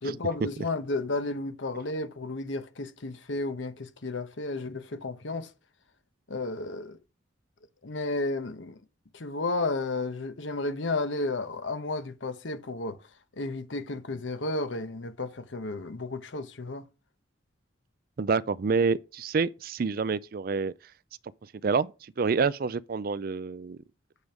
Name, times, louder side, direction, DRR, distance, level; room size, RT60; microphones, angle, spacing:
voice 1, 0.0-5.5 6.3-7.0 7.8-8.8 9.1-13.0 13.3-16.8, left 2 dB, 85° left, 1.0 m, -32 dB
voice 2, 18.2-20.7 21.6-23.8, right 5 dB, 50° right, 0.4 m, -27 dB
8.2 x 5.2 x 4.6 m
head